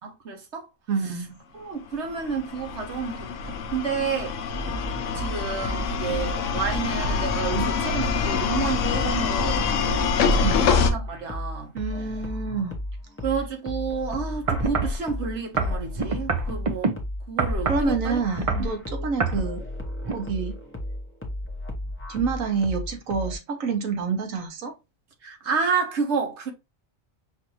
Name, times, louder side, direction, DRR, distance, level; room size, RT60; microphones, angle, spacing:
voice 1, 0.0-0.7 1.0-1.2 1.5-4.4 5.1-11.7 13.2-17.0 17.3-18.2 18.6-19.4 25.2-26.5, right 5 dB, 60° right, 1.2 m, -30 dB
voice 2, 0.9-1.3 7.5-7.6 10.4-10.6 11.7-12.8 17.7-19.7 20.1-20.6 22.1-24.7, right 5 dB, 85° right, 1.4 m, -27 dB
sound 1, 2.1-10.9, left 5 dB, 70° left, 0.9 m, -25 dB
sound 2, 4.5-23.4, left 1 dB, 10° left, 0.7 m, -34 dB
sound 3, 14.5-15.0 15.6-16.9 17.4-17.9 18.3-18.7 19.2-19.4 20.0-20.1, right 3 dB, 45° right, 0.5 m, -25 dB
6.0 x 2.6 x 2.9 m
omnidirectional pair, 1.4 m